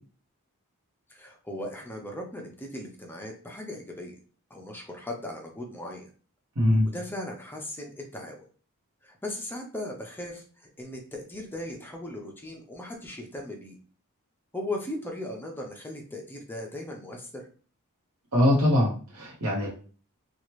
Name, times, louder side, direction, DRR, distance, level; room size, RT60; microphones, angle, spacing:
voice 1, 1.1-4.1 4.5-6.1 6.9-8.4 9.0-13.8 14.5-17.4, left 1 dB, 10° left, 0 dB, 0.6 m, -38 dB
voice 2, 6.6-6.9 18.3-19.7, left 1 dB, 75° right, -6 dB, 1.0 m, -22 dB
2.9 x 2.4 x 3.1 m, 0.39 s
head